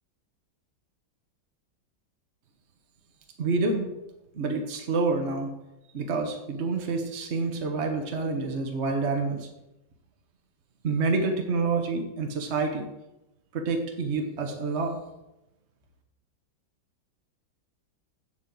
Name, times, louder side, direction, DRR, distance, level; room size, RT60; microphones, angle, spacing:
voice 1, 3.4-3.9 4.3-5.5 5.9-9.5 10.8-12.9 13.5-15.0, right 3 dB, 40° right, 3 dB, 1.4 m, -28 dB
7.9 x 7.5 x 7.7 m, 0.94 s
omnidirectional pair, 1.9 m